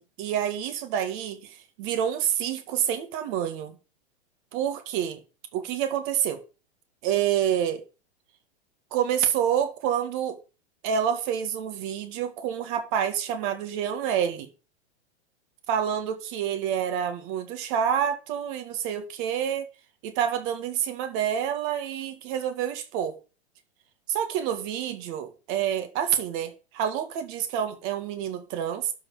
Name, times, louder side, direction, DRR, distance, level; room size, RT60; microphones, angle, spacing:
voice 1, 0.0-3.8 4.5-5.2 5.5-6.4 7.0-7.8 8.9-10.4 10.8-14.5 15.7-19.7 20.0-23.2 24.1-28.9, right 9 dB, 50° right, 2.2 m, -28 dB
12.0 x 4.9 x 5.1 m
hypercardioid pair, 125°, 34 cm